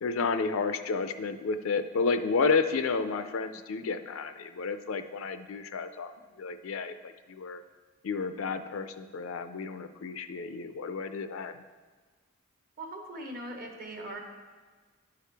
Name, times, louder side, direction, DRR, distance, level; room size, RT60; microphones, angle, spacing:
voice 1, 0.0-6.1 6.4-7.6 8.0-11.6, left 4 dB, 80° left, 10 dB, 0.4 m, -31 dB
voice 2, 12.8-14.2, right 1 dB, 45° right, 2 dB, 1.1 m, -40 dB
11.5 x 4.8 x 3.4 m, 1.4 s
head